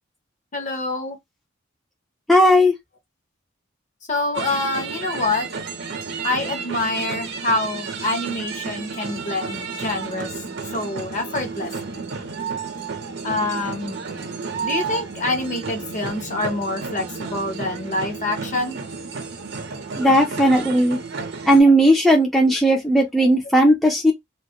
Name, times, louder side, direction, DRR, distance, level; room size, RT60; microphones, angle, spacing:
voice 1, 0.5-1.2 4.1-5.5 6.2-10.3 10.7-12.0 13.2-14.0 14.6-18.8, left 2 dB, 40° left, 0.7 m, -26 dB
voice 2, 2.3-2.7 20.0-21.0 21.5-24.1, equal, ahead, 0.4 m, -16 dB
sound 1, 4.3-21.6, right 5 dB, 60° right, 0.7 m, -32 dB
2.3 x 2.1 x 2.7 m
head